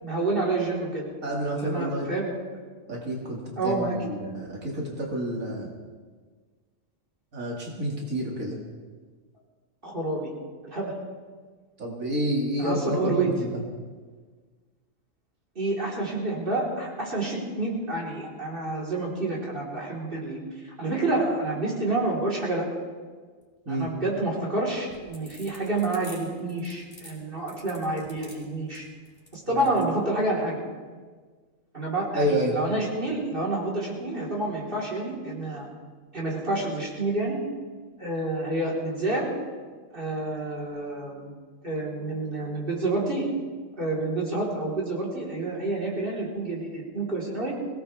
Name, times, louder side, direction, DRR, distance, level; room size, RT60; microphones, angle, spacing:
voice 1, 0.0-1.1 1.5-2.3 3.6-4.0 9.8-10.3 10.6-10.9 12.6-13.3 15.6-22.7 23.7-28.9 29.3-30.6 31.7-35.7 36.1-37.4 38.0-39.3 39.9-41.3 41.6-43.3 43.8-47.5, right 2 dB, 40° right, -4 dB, 4.2 m, -28 dB
voice 2, 1.2-2.1 2.9-5.7 7.3-8.6 11.8-13.6 23.7-23.9 29.5-29.7 32.1-32.6, equal, 75° right, -2 dB, 2.6 m, -29 dB
sound 1, 24.8-29.9, equal, 15° left, 4.9 m, -48 dB
22.5 x 18.0 x 3.5 m, 1.5 s
omnidirectional pair, 1.4 m